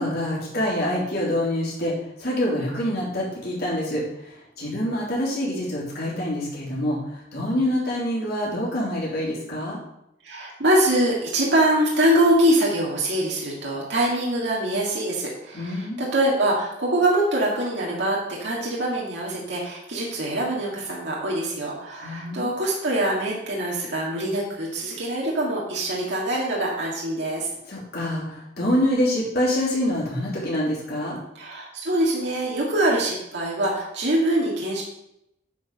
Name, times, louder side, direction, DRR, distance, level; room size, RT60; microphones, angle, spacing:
voice 1, 0.0-1.9 2.2-4.0 4.6-7.0 7.3-9.8 15.5-16.0 22.0-22.5 27.7-31.2, left 1 dB, 55° left, -4 dB, 3.3 m, -26 dB
voice 2, 10.2-27.5 31.3-34.8, right 1 dB, 65° right, -4 dB, 1.9 m, -24 dB
9.3 x 4.8 x 5.4 m, 0.82 s
head